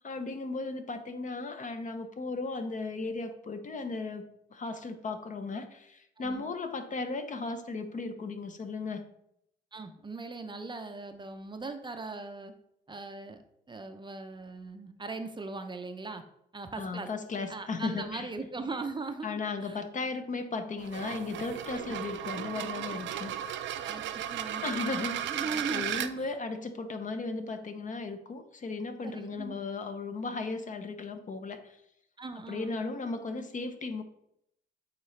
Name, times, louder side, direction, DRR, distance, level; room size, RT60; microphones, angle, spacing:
voice 1, 0.0-4.3 4.5-9.1 16.8-18.3 19.2-23.3 24.6-31.8 32.5-34.0, left 3 dB, 40° left, 8 dB, 0.7 m, -36 dB
voice 2, 9.7-12.5 12.9-13.4 13.7-16.2 16.5-17.1 17.5-19.8 21.9-22.0 23.8-25.9 26.1-26.3 29.0-29.6 32.2-32.8, right 3 dB, 25° right, 7 dB, 0.5 m, -39 dB
sound 1, 20.8-26.1, right 10 dB, 70° right, 0.4 m, -35 dB
8.2 x 3.8 x 3.2 m, 0.77 s
cardioid pair, 90°, 20 cm